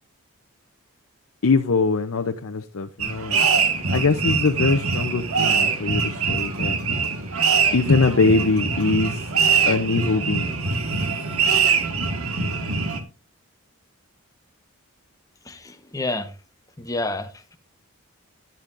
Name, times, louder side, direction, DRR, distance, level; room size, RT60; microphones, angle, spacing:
voice 1, 1.4-3.5 3.9-6.8 7.7-9.3 9.7-10.5, left 3 dB, 70° left, 0.7 m, -22 dB
sound 1, 3.0-13.0, right 5 dB, 80° right, 1.6 m, -23 dB
voice 2, 15.5-16.3 16.8-17.3, left 2 dB, 15° left, 0.9 m, -29 dB
13.0 x 10.5 x 2.6 m
head